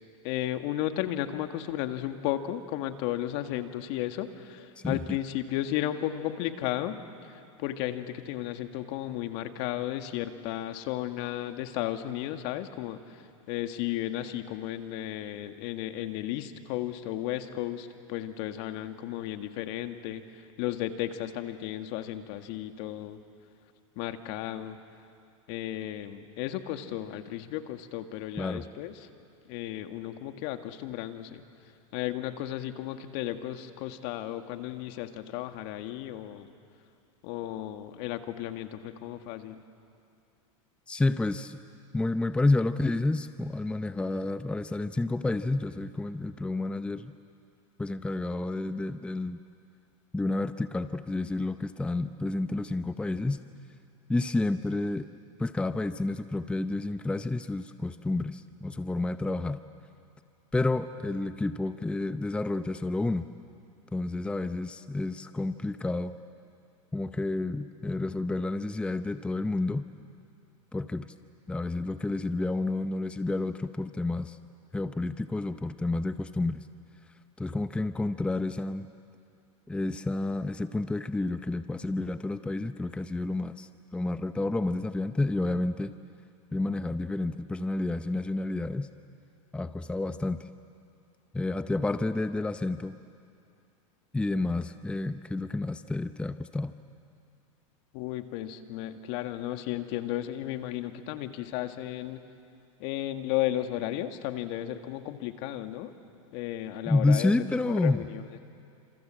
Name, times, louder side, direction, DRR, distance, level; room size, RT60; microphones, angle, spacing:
voice 1, 0.2-23.2 24.0-24.8 25.5-29.1 29.5-31.4 31.9-36.5 37.2-39.6 97.9-102.2 102.8-105.9 106.3-107.3 107.7-108.4, left 13 dB, 60° left, 7 dB, 1.9 m, -34 dB
voice 2, 40.9-41.6 41.9-47.1 47.8-49.4 50.1-53.4 54.1-55.1 55.4-59.6 60.5-63.2 63.9-66.1 66.9-69.8 70.7-71.1 71.5-74.4 74.7-76.7 77.4-78.9 79.7-85.9 86.5-88.9 89.5-90.5 91.3-93.0 94.1-96.7 106.9-108.0, left 2 dB, 5° left, 11 dB, 0.7 m, -30 dB
29.0 x 27.0 x 7.6 m, 2.5 s
hypercardioid pair, 115°, 17 cm